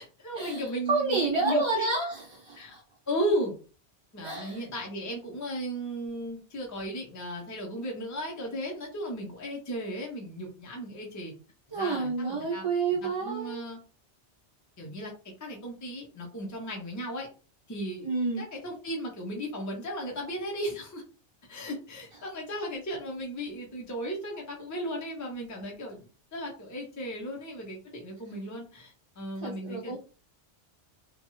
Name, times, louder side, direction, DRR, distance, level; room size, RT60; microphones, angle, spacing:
voice 1, 0.0-1.9 2.6-2.8 3.1-3.5 4.1-11.3 11.7-12.6 13.0-13.8 14.8-15.1 15.4-17.3 17.7-18.1 18.4-21.0 21.5-30.0, equal, 20° left, 0 dB, 0.6 m, -35 dB
voice 2, 0.9-2.8 4.2-4.6 11.7-13.7 18.0-18.4 29.4-30.0, right 3 dB, 40° right, -3 dB, 0.4 m, -29 dB
2.7 x 2.3 x 3.0 m, 0.36 s
omnidirectional pair, 1.2 m